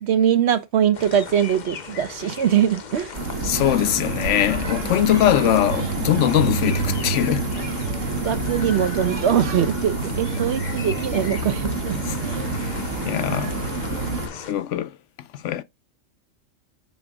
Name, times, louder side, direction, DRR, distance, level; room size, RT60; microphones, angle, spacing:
voice 1, 0.0-3.1 8.2-12.5, right 9 dB, 65° right, 0.9 m, -22 dB
sound 1, 0.9-14.5, left 6 dB, 45° left, 0.7 m, -37 dB
sound 2, 3.1-14.3, right 3 dB, 85° right, 1.5 m, -27 dB
voice 2, 3.4-7.5 12.1-12.2 12.5-12.8 13.1-13.6 14.3-15.0 15.3-15.6, left 11 dB, 75° left, 0.9 m, -21 dB
6.8 x 3.9 x 3.5 m
omnidirectional pair, 1.3 m